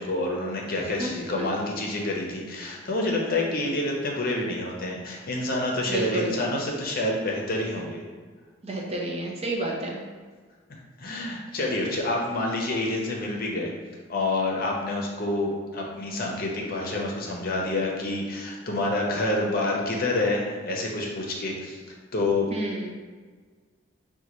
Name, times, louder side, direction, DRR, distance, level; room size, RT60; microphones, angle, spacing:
voice 1, 0.0-8.0 11.0-13.7 14.1-21.8 22.1-22.5, left 2 dB, 50° left, -1 dB, 0.7 m, -28 dB
voice 2, 5.9-6.4 8.6-10.0 22.5-22.9, right 2 dB, 35° right, -2 dB, 0.6 m, -30 dB
5.2 x 2.2 x 3.0 m, 1.5 s
head